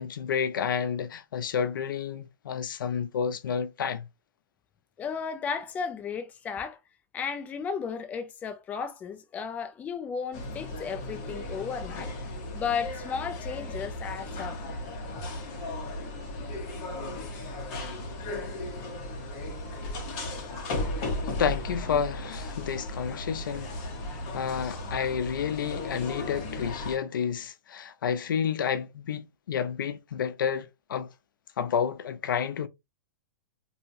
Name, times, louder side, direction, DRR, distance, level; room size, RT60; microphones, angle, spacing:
voice 1, 0.0-4.0 21.4-23.7 24.3-31.1 31.6-32.7, left 7 dB, 90° left, 0.4 m, -30 dB
voice 2, 5.0-6.8 7.1-12.1 12.5-14.6, left 6 dB, 15° left, 0.4 m, -34 dB
sound 1, 10.3-27.0, left 2 dB, 40° left, 1.1 m, -36 dB
2.8 x 2.7 x 2.5 m
hypercardioid pair, 145°, 11 cm